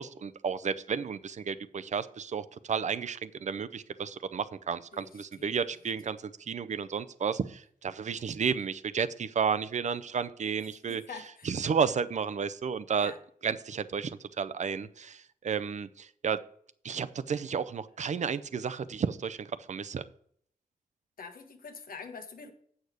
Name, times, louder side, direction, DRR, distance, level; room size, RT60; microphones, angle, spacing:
voice 1, 0.0-11.0 11.4-13.1 13.4-16.4 16.8-20.0, right 6 dB, 50° right, 0.5 m, -32 dB
voice 2, 10.9-11.5 12.9-13.2 21.2-22.5, left 5 dB, 75° left, 1.2 m, -45 dB
8.2 x 6.5 x 4.9 m
wide cardioid pair, 115°, 15 cm